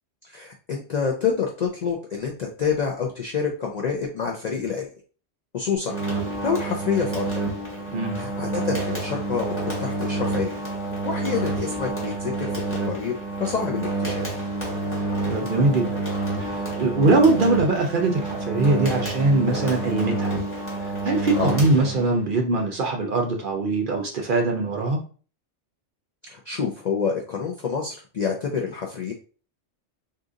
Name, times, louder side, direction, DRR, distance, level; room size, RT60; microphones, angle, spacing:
voice 1, 0.3-4.9 5.5-6.0 6.4-7.3 8.1-10.6 11.0-13.1 13.4-14.2 21.4-21.5 26.2-29.1, left 6 dB, 65° left, 1 dB, 0.4 m, -27 dB
sound 1, 5.8-22.3, right 2 dB, 10° left, 1.0 m, -28 dB
voice 2, 15.3-16.0 16.4-20.3 20.8-25.0, right 2 dB, 55° right, 2 dB, 0.6 m, -22 dB
2.7 x 2.5 x 3.6 m, 0.39 s
omnidirectional pair, 1.3 m